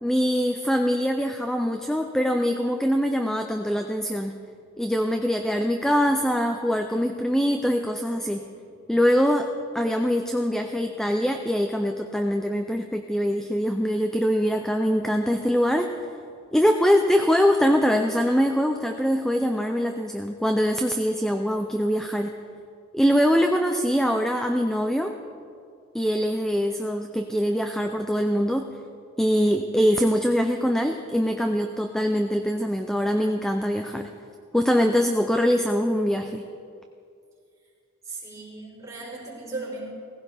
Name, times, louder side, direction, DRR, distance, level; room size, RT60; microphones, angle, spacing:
voice 1, 0.0-4.4 4.8-8.5 8.9-9.5 9.7-15.9 16.5-22.4 22.9-25.1 25.9-28.7 29.2-34.1 34.5-36.4, equal, ahead, 5 dB, 0.4 m, -23 dB
voice 2, 38.0-39.8, right 3 dB, 15° right, -5 dB, 4.3 m, -36 dB
18.0 x 16.0 x 3.5 m, 2.4 s
head